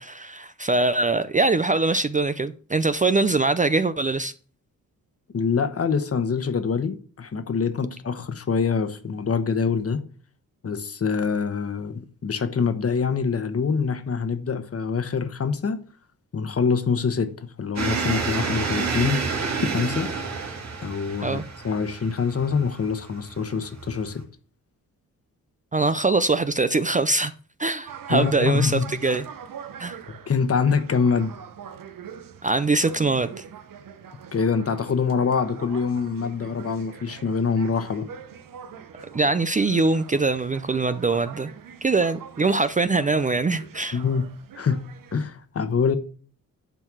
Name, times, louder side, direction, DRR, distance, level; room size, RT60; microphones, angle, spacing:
voice 1, 0.0-4.3 21.2-21.4 25.7-27.3 27.6-29.2 29.8-30.0 32.4-33.4 39.1-41.5 41.8-44.0, right 3 dB, 25° right, 0.5 m, -23 dB
voice 2, 5.3-10.0 10.6-15.8 16.3-19.2 19.6-20.1 20.8-24.2 28.1-28.9 30.1-31.4 34.3-38.1 43.9-44.2 44.5-44.8 45.1-46.0, left 5 dB, 45° left, 1.2 m, -25 dB
sound 1, 17.8-24.2, right 4 dB, 50° right, 2.2 m, -29 dB
sound 2, 27.8-45.2, right 8 dB, 70° right, 1.0 m, -43 dB
11.0 x 4.6 x 6.1 m
wide cardioid pair, 110°, 34 cm